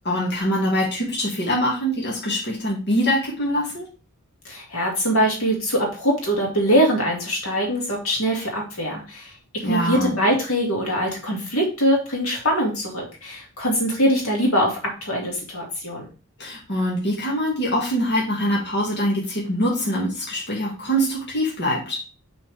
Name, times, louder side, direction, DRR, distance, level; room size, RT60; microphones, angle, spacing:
voice 1, 0.0-3.9 9.6-10.2 16.4-22.0, equal, 55° left, -4 dB, 2.1 m, -24 dB
voice 2, 4.4-9.3 9.6-16.1, equal, 75° left, -1 dB, 2.4 m, -22 dB
5.9 x 5.6 x 3.5 m, 0.34 s
head